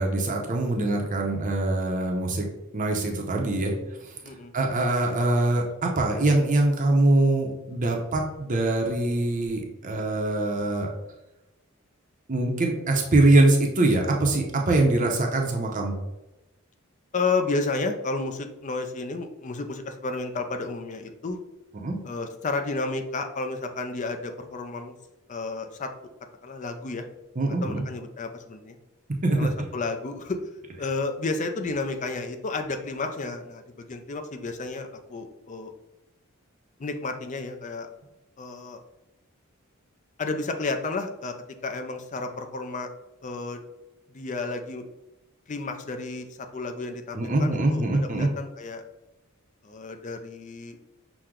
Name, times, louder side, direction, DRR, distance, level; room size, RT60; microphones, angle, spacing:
voice 1, 0.0-2.4 2.7-3.7 4.5-10.9 12.3-15.9 21.8-22.0 27.4-27.8 29.2-29.5 47.1-48.3, right 2 dB, 40° right, 0 dB, 0.7 m, -23 dB
voice 2, 17.1-21.4 22.0-24.9 25.3-25.9 26.4-27.0 27.4-28.8 29.4-30.4 30.8-35.7 36.8-37.9 38.4-38.8 40.2-41.3 41.6-42.9 43.2-43.6 44.1-44.8 45.5-47.8 48.1-48.8 49.6-50.8, left 3 dB, 35° left, 6 dB, 0.4 m, -31 dB
6.0 x 2.2 x 3.7 m, 0.96 s
head